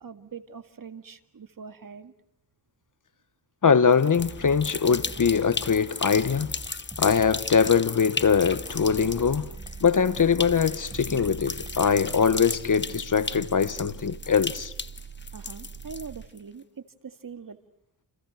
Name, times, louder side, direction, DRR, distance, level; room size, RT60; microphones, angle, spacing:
voice 1, 0.0-2.1 6.8-6.9 15.3-17.6, right 5 dB, 50° right, 2.0 m, -43 dB
voice 2, 3.6-6.6 7.0-9.5 9.8-14.7, left 6 dB, 45° left, 1.1 m, -22 dB
sound 1, 3.9-16.4, left 4 dB, 25° left, 1.0 m, -36 dB
sound 2, 4.2-12.1, right 1 dB, 10° right, 3.9 m, -44 dB
sound 3, 8.7-16.3, right 7 dB, 70° right, 2.2 m, -43 dB
30.0 x 28.5 x 6.3 m
cardioid pair, 70°, 41 cm